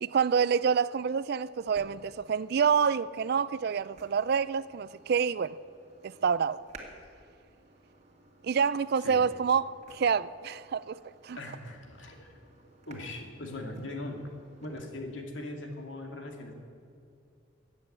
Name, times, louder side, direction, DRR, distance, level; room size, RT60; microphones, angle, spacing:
voice 1, 0.0-5.5 6.0-6.6 8.4-11.4, right 6 dB, 55° right, 0.4 m, -27 dB
sound 1, 1.6-14.8, right 2 dB, 35° right, 2.1 m, -56 dB
voice 2, 11.3-12.3 12.9-14.3 14.6-16.5, left 1 dB, 75° left, 2.3 m, -40 dB
14.5 x 8.9 x 8.9 m
head